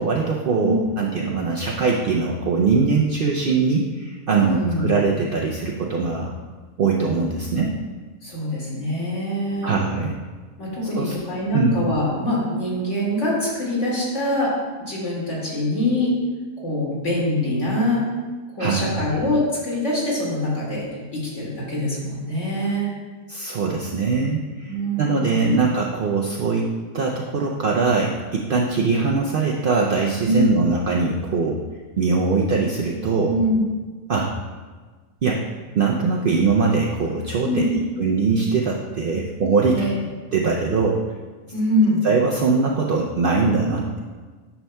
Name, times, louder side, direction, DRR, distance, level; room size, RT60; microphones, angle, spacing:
voice 1, 0.0-6.3 6.8-7.7 9.6-10.1 11.0-11.1 11.5-11.8 18.6-18.9 23.3-31.6 32.0-33.4 34.1-34.3 35.2-35.4 35.7-39.8 40.3-41.0 42.0-44.0, right 4 dB, 70° right, -2 dB, 0.5 m, -22 dB
voice 2, 4.4-4.9 8.2-9.7 10.6-14.5 14.8-16.1 16.6-18.0 18.6-22.9 24.7-25.6 30.2-30.6 33.3-33.6 37.4-37.7 39.7-40.0 41.5-42.1, left 1 dB, 55° left, -6 dB, 2.4 m, -24 dB
9.7 x 5.6 x 2.2 m, 1.4 s
omnidirectional pair, 1.5 m